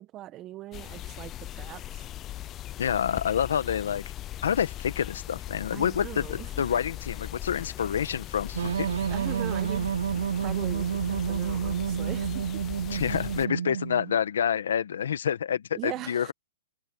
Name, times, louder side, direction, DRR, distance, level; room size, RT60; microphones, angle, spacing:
voice 1, 0.0-2.1 5.7-6.7 9.1-12.6 15.7-16.3, right 14 dB, 20° right, 1.1 m, -40 dB
sound 1, 0.7-13.5, left 13 dB, 20° left, 0.4 m, -39 dB
voice 2, 2.8-4.0 4.4-8.9 12.9-16.3, left 8 dB, 75° left, 1.4 m, -28 dB
sound 2, 8.5-14.2, right 7 dB, 80° right, 0.3 m, -29 dB
hypercardioid pair, 170°, 0 cm